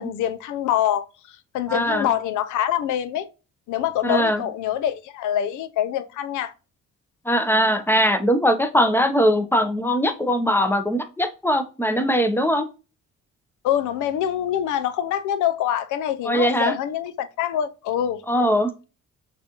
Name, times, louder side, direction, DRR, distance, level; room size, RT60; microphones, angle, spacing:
voice 1, 0.0-3.3 3.7-6.5 13.6-18.2, left 10 dB, 80° left, 0.5 m, -25 dB
voice 2, 1.7-2.1 4.0-4.4 7.3-12.6 16.3-16.7 18.3-18.7, equal, 5° left, 0.6 m, -21 dB
6.0 x 2.5 x 2.8 m
cardioid pair, 90°, 30 cm